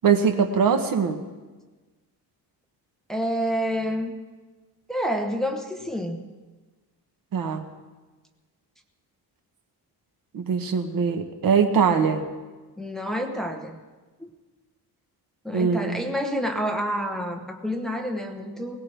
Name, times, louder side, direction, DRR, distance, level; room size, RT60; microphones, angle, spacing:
voice 1, 0.0-1.2 7.3-7.7 10.3-12.3 15.5-16.1, right 6 dB, 55° right, 7 dB, 1.2 m, -22 dB
voice 2, 3.1-4.1 4.9-6.3 12.8-13.8 14.2-14.3 15.4-18.8, equal, ahead, 3 dB, 1.1 m, -28 dB
21.0 x 18.5 x 3.5 m, 1.3 s
wide cardioid pair, 165°, 40 cm